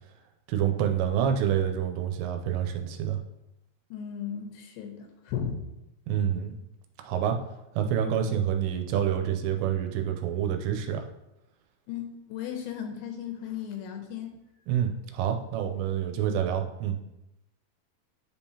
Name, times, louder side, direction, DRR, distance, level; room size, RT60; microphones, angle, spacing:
voice 1, 0.5-3.2 6.1-6.6 7.0-7.4 7.7-11.1 14.7-17.0, right 9 dB, 85° right, 4 dB, 2.8 m, -27 dB
voice 2, 3.9-5.6 11.9-14.3 16.2-16.3, left 8 dB, 80° left, 4 dB, 2.7 m, -36 dB
10.0 x 3.6 x 2.8 m, 0.91 s
omnidirectional pair, 5.0 m